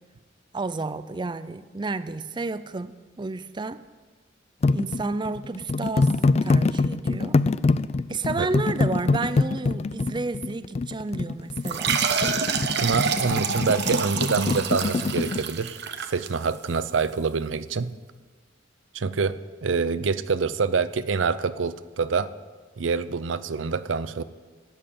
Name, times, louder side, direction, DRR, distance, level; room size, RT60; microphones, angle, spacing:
voice 1, 0.5-3.8 4.7-6.1 6.4-7.4 8.1-12.0, right 3 dB, 25° right, 13 dB, 0.4 m, -31 dB
sound 1, 4.6-15.4, left 3 dB, 35° left, 0.3 m, -24 dB
sound 2, 11.6-16.8, right 6 dB, 60° right, 1.0 m, -28 dB
voice 2, 12.8-15.8 16.1-17.9 18.9-22.3 22.8-24.2, right 5 dB, 90° right, 14 dB, 0.6 m, -26 dB
12.5 x 8.9 x 8.4 m, 1.4 s
head